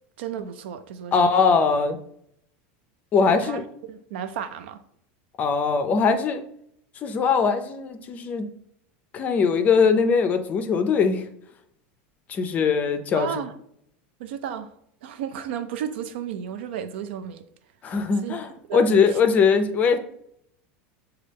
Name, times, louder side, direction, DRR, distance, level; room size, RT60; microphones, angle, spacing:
voice 1, 0.2-1.2 3.2-4.8 13.2-13.5 14.2-14.7 15.0-17.5 18.2-18.4 18.7-19.0, right 8 dB, 85° right, 0.4 m, -33 dB
voice 2, 1.1-2.0 3.1-3.6 5.4-6.4 7.0-8.5 9.1-11.2 12.3-13.3 17.8-20.0, left 5 dB, 25° left, 0.4 m, -21 dB
6.3 x 2.3 x 3.3 m
supercardioid pair, 155°, 6 cm